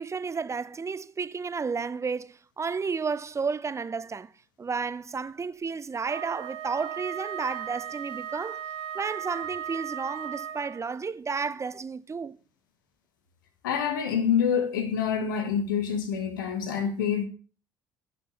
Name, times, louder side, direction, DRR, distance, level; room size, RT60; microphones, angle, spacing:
voice 1, 0.0-4.3 4.6-8.6 8.9-12.4, right 5 dB, 25° right, 0.7 m, -32 dB
Wind instrument woodwind instrument, 6.0-10.9, right 9 dB, 65° right, 1.0 m, -36 dB
voice 2, 13.6-17.2, left 7 dB, 80° left, 1.5 m, -26 dB
10.5 x 6.1 x 6.8 m
hypercardioid pair, 55°, 11 cm